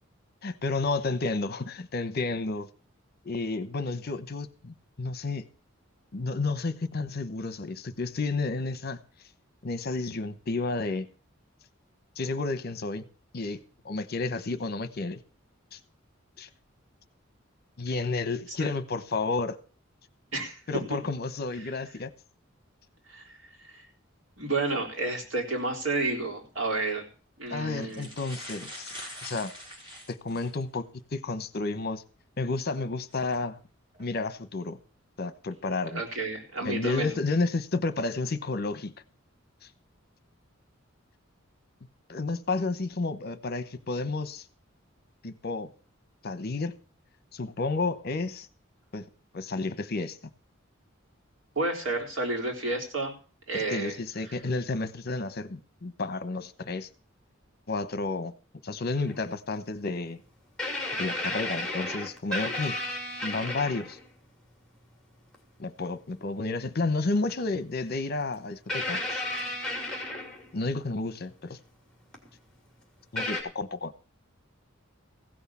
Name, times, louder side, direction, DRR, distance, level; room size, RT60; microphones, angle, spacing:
voice 1, 0.4-2.7 3.2-5.4 6.1-9.0 9.6-11.1 12.2-13.1 13.3-13.6 13.8-15.2 15.7-15.8 16.4-16.5 17.8-19.6 20.7-22.1 27.5-29.0 29.2-29.5 30.1-30.9 31.1-32.0 32.4-33.6 34.0-34.8 35.2-36.0 36.6-38.9 39.6-39.7 42.1-44.4 45.2-45.7 46.2-46.8 47.3-48.5 48.9-49.1 49.3-50.2 53.5-56.9 57.7-58.3 58.6-60.2 61.0-62.8 63.2-64.0 65.6-69.2 70.5-71.6 73.1-73.9, left 3 dB, 50° left, 1.0 m, -31 dB
voice 2, 24.4-27.0 27.4-28.1 35.9-37.1 51.6-53.1 53.5-53.9, right 2 dB, 75° right, 4.0 m, -30 dB
sound 1, 26.4-26.6 27.5-27.6 27.8-30.6 31.2-31.3 33.1-33.3 33.9-34.2, equal, 25° right, 4.1 m, -43 dB
sound 2, 59.0-59.2 60.6-64.1 65.3-65.4 67.3-67.4 68.7-70.7 72.1-72.3 73.2-73.4, left 1 dB, 5° left, 2.9 m, -33 dB
16.0 x 6.4 x 7.2 m
head